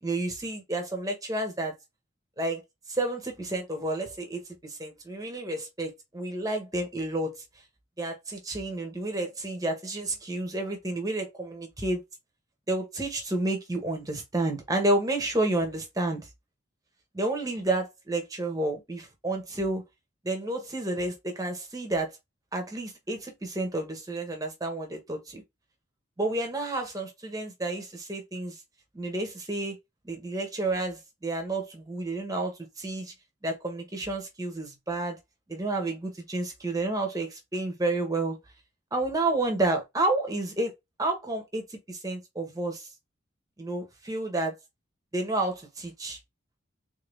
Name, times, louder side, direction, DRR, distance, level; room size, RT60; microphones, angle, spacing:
voice 1, 0.0-1.7 2.4-2.6 2.9-7.4 8.0-12.0 12.7-16.2 17.1-19.8 20.2-22.1 22.5-25.4 26.2-28.6 28.9-29.8 30.0-33.1 33.4-35.2 35.5-38.4 38.9-40.7 41.0-42.9 43.6-44.6 45.1-46.2, right 2 dB, 20° right, 1.1 m, -30 dB
3.8 x 3.5 x 2.5 m
head